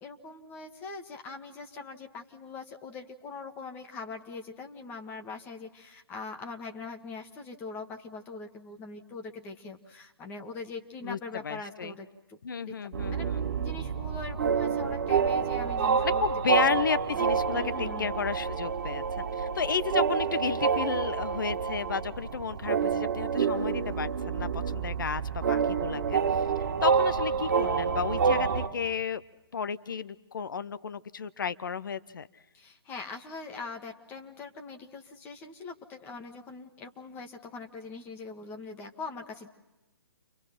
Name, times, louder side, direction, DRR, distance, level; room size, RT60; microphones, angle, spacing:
voice 1, 0.0-12.4 12.7-12.8 13.1-13.3 13.6-16.2 17.5-18.1 32.5-39.5, left 4 dB, 15° left, 3 dB, 1.6 m, -42 dB
voice 2, 11.4-12.0 12.4-13.4 16.0-26.2 26.8-29.2 29.5-32.3, left 6 dB, 55° left, 15 dB, 0.8 m, -32 dB
sound 1, 12.9-28.7, right 6 dB, 45° right, 2.1 m, -28 dB
30.0 x 25.5 x 5.9 m, 1.0 s
figure-of-eight pair, 130°, 13 cm